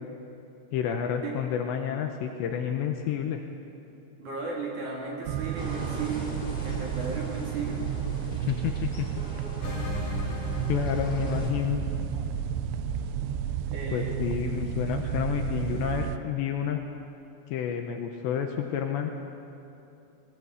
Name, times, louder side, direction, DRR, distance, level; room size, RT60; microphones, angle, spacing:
voice 1, 0.7-3.4 8.3-9.1 10.7-11.8 13.9-16.8 17.5-19.1, left 8 dB, 75° left, 4 dB, 2.9 m, -29 dB
voice 2, 4.2-6.4 6.6-7.9 13.7-14.2, right 3 dB, 45° right, -2 dB, 3.3 m, -35 dB
sound 1, 5.3-16.2, right 11 dB, 85° right, 2.6 m, -32 dB
sound 2, 5.6-11.5, left 1 dB, 25° left, 1.2 m, -43 dB
sound 3, 9.6-14.5, left 4 dB, 55° left, 5.8 m, -37 dB
19.5 x 17.5 x 8.3 m, 2.8 s
omnidirectional pair, 5.7 m